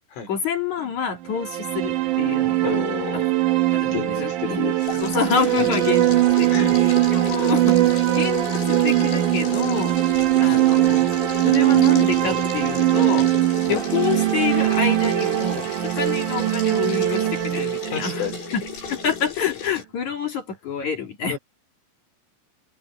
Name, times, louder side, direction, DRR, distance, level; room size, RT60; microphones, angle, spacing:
voice 1, 0.3-2.7 3.1-3.2 3.7-4.6 5.0-10.0 10.4-11.1 11.4-18.3 18.5-18.6 18.9-21.4, left 6 dB, 45° left, 3.1 m, -28 dB
sound 1, 1.2-19.2, right 15 dB, 80° right, 1.8 m, -21 dB
voice 2, 2.6-3.3 3.9-5.0 5.4-5.7 6.5-6.8 10.5-10.7 13.7-13.9 17.9-18.4 21.3-21.4, left 8 dB, 80° left, 7.4 m, -31 dB
sound 2, 4.8-19.8, left 8 dB, 65° left, 7.4 m, -35 dB
omnidirectional pair, 5.6 m